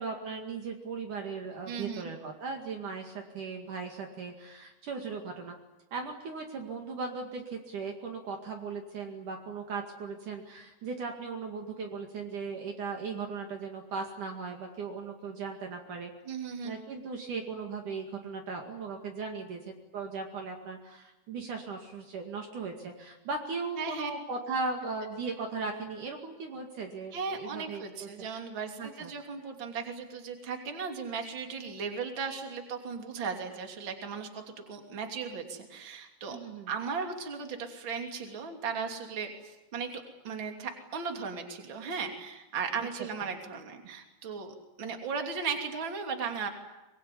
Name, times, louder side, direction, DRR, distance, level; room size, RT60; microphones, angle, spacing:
voice 1, 0.0-5.5 5.9-16.1 16.6-28.3 28.8-29.1 36.3-36.7 42.8-42.9, right 4 dB, 55° right, 2 dB, 3.4 m, -38 dB
voice 2, 1.7-2.1 16.2-16.7 23.8-24.1 27.1-36.4 36.7-44.5 44.8-46.5, right 5 dB, 30° right, 4 dB, 3.3 m, -36 dB
25.0 x 22.0 x 9.9 m, 1.0 s
omnidirectional pair, 4.5 m